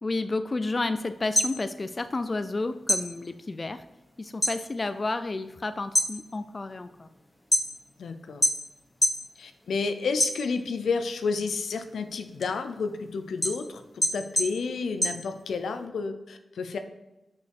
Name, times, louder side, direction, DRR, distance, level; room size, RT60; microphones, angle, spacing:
voice 1, 0.0-3.8 4.2-7.1, left 2 dB, 40° left, 11 dB, 0.4 m, -31 dB
sound 1, 1.2-2.5 2.8-4.6 5.0-5.4 5.8-8.0 8.4-9.3 9.6-10.8 11.3-15.8, left 1 dB, 20° left, 1.4 m, -27 dB
voice 2, 8.0-8.4 9.4-13.8 14.1-16.8, left 4 dB, 85° left, 8 dB, 0.6 m, -30 dB
6.2 x 5.7 x 4.8 m, 0.97 s
cardioid pair, 55°, 0 cm